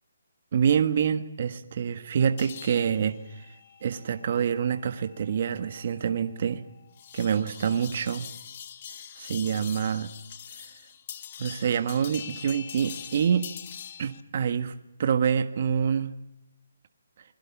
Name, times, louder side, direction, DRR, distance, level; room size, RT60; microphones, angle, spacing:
voice 1, 0.5-3.5 3.8-6.6 7.1-8.3 9.2-10.1 11.4-13.5 14.0-14.7 15.0-16.1, right 7 dB, 45° right, 9 dB, 1.4 m, -26 dB
sound 1, 2.4-14.2, left 8 dB, 35° left, 1.8 m, -44 dB
28.5 x 21.5 x 7.2 m, 0.86 s
hypercardioid pair, 165°, 0 cm